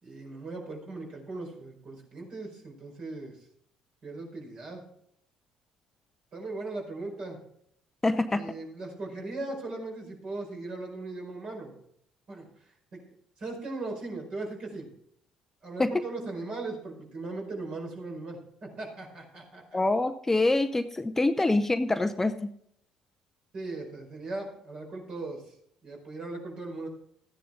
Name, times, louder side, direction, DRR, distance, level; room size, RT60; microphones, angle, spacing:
voice 1, 0.0-3.4 4.0-4.8 6.3-7.4 8.3-11.7 12.3-13.0 13.4-14.9 15.6-19.8 23.5-25.6 25.8-26.9, right 2 dB, 50° right, 0 dB, 5.0 m, -38 dB
voice 2, 8.0-8.4 15.8-15.9 19.7-22.4, left 2 dB, 15° left, 9 dB, 0.6 m, -25 dB
14.5 x 10.0 x 3.8 m, 0.69 s
hypercardioid pair, 50°, 2 cm